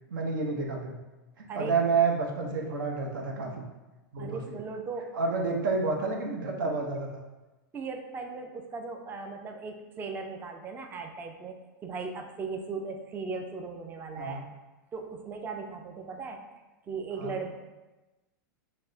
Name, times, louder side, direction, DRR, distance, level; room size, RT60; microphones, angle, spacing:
voice 1, 0.1-1.0 1.4-3.7 4.1-4.6 5.1-7.2 14.2-14.4 17.2-17.4, right 4 dB, 80° right, 1 dB, 0.7 m, -29 dB
voice 2, 4.2-5.2 6.6-6.7 7.7-14.4 14.9-16.5 16.9-17.5, right 4 dB, 20° right, 5 dB, 0.3 m, -38 dB
5.9 x 2.1 x 2.7 m, 1.1 s
hypercardioid pair, 125°, 11 cm